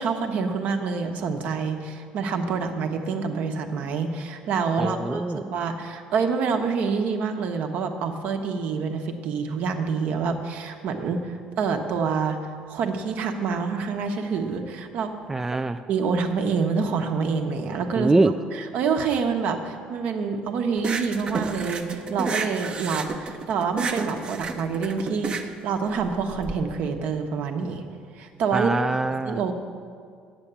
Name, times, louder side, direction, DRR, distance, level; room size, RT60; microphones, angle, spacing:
voice 1, 0.0-12.4 12.7-15.1 15.9-27.8 28.2-28.7 29.2-29.5, right 5 dB, 65° right, 5 dB, 1.0 m, -27 dB
voice 2, 4.8-5.4 15.3-15.8 18.0-18.3 28.5-29.4, right 2 dB, 10° right, 8 dB, 0.3 m, -23 dB
sound 1, 20.8-26.5, right 4 dB, 35° right, 0.7 m, -31 dB
8.8 x 6.8 x 8.6 m, 2.2 s
cardioid pair, 115°, 3 cm